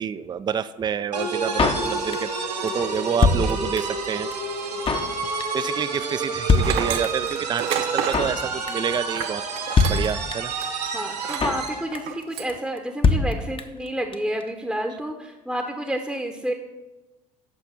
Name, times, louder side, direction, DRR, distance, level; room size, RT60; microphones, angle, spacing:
voice 1, 0.0-2.3 2.6-4.5 5.2-9.4 9.9-10.5, right 7 dB, 20° right, 14 dB, 0.4 m, -28 dB
sound 1, 1.1-11.9, right 4 dB, 80° right, 1.1 m, -29 dB
Drum kit, 1.6-2.4 2.7-2.8 2.9-4.0 4.3-4.4 4.6-5.1 5.4-5.7 5.9-6.0 6.2-6.3 6.5-7.3 7.6-7.7 7.9-8.4 8.7-9.0 9.2-9.3 9.5-9.6 9.8-10.6 10.9-11.0 11.1-11.7 11.9-12.2 12.5-12.6 12.8-12.9 13.0-13.9 14.1-14.2 14.4-14.5, left 4 dB, 25° left, 0.8 m, -22 dB
Tools, 6.5-10.2 10.6-10.7 11.2-11.5 11.9-12.6, right 9 dB, 60° right, 0.9 m, -31 dB
voice 2, 10.9-16.5, right 1 dB, ahead, 3 dB, 0.9 m, -30 dB
8.4 x 6.0 x 5.7 m, 1.1 s
figure-of-eight pair, 60°, 21 cm